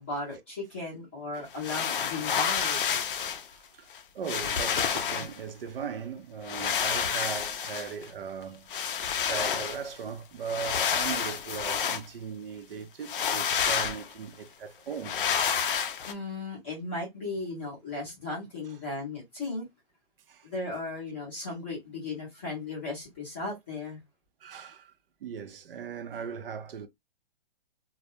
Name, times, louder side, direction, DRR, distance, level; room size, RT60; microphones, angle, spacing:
voice 1, 0.0-2.8 5.2-5.3 16.0-19.7 20.4-24.0, left 3 dB, 10° left, 0.5 m, -36 dB
sound 1, 1.5-3.5 3.9-4.0 4.3-5.4 6.4-8.1 8.7-9.9 10.5-12.1 13.0-14.1 15.0-16.1, left 7 dB, 60° left, 0.4 m, -29 dB
voice 2, 3.5-3.9 4.1-15.2 20.3-20.5 24.4-24.9 25.2-26.9, right 6 dB, 65° right, 0.5 m, -38 dB
2.2 x 2.0 x 2.7 m
hypercardioid pair, 180°, 30 cm